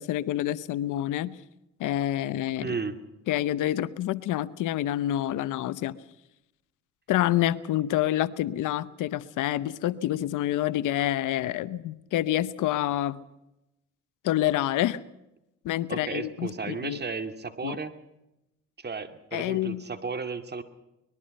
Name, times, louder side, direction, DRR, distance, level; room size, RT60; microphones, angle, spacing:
voice 1, 0.0-1.4 1.8-2.8 3.3-6.0 7.1-13.2 14.2-15.0 15.6-17.0 17.6-17.8 19.3-19.8, left 13 dB, 90° left, 16 dB, 1.0 m, -27 dB
voice 2, 2.6-3.0 15.9-17.9 18.8-20.6, right 4 dB, 35° right, 9 dB, 2.3 m, -34 dB
24.5 x 21.0 x 5.5 m, 0.90 s
cardioid pair, 90°, 30 cm